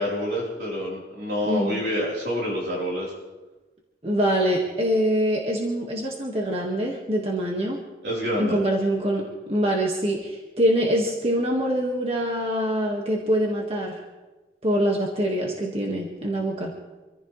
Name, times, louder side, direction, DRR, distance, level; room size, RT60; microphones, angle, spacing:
voice 1, 0.0-3.1 8.0-8.6, equal, 65° right, -5 dB, 4.1 m, -27 dB
voice 2, 1.5-1.8 4.0-7.8 8.4-14.0 14.6-16.7, equal, 35° right, -1 dB, 1.9 m, -24 dB
26.0 x 14.5 x 3.3 m, 1.2 s
head